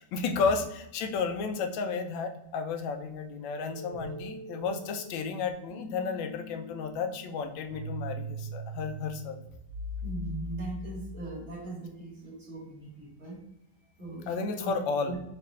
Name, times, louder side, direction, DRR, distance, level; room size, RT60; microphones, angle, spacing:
voice 1, 0.0-9.4 14.3-15.2, left 5 dB, 80° left, 6 dB, 1.3 m, -32 dB
sound 1, 3.7-11.6, equal, 85° right, 1.6 m, -41 dB
voice 2, 10.0-13.4 14.0-14.7 15.0-15.2, right 3 dB, 45° right, -5 dB, 1.8 m, -40 dB
4.5 x 2.9 x 3.1 m, 0.84 s
omnidirectional pair, 2.1 m